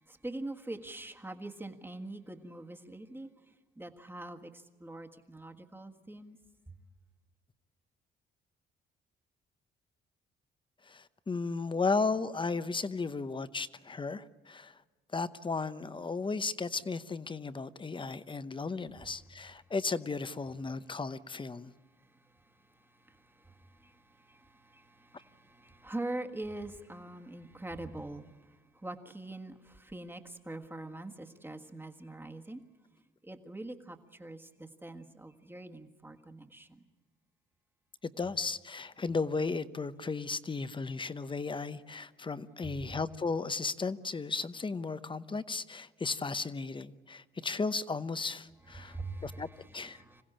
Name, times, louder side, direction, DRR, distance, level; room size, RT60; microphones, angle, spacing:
voice 1, 0.1-3.3 3.8-6.4 22.0-32.6 33.2-36.9 42.6-42.7 48.7-50.2, right 2 dB, 10° right, 1.6 m, -44 dB
voice 2, 10.9-14.8 15.1-21.7 38.0-49.5 49.7-50.0, left 4 dB, 25° left, 0.8 m, -35 dB
26.5 x 16.0 x 8.9 m
cardioid pair, 90°, 20 cm